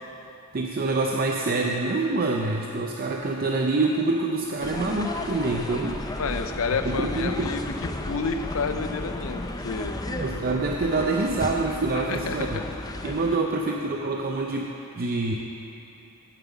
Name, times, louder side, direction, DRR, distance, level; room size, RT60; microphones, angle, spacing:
voice 1, 0.5-6.0 6.8-7.5 10.1-12.6 13.0-14.7 15.0-15.3, right 3 dB, 45° right, 1 dB, 0.5 m, -26 dB
sound 1, 4.6-13.4, left 2 dB, 15° left, 0.5 m, -33 dB
voice 2, 6.2-7.6 8.0-10.0 11.9-12.6, left 5 dB, 65° left, 8 dB, 0.6 m, -30 dB
9.1 x 7.5 x 7.1 m, 2.9 s
head